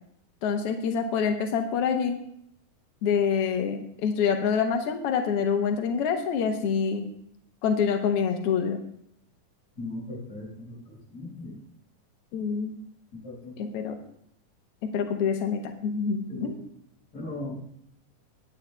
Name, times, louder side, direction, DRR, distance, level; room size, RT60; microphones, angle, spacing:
voice 1, 0.4-2.2 3.0-7.1 7.6-8.8 12.3-12.8 13.6-14.0 14.8-16.6, left 6 dB, 85° left, 5 dB, 1.3 m, -26 dB
voice 2, 9.8-11.6 13.1-13.7 16.3-16.5 17.1-17.6, left 2 dB, 30° left, -4 dB, 5.3 m, -38 dB
18.0 x 9.0 x 2.2 m, 0.73 s
omnidirectional pair, 3.7 m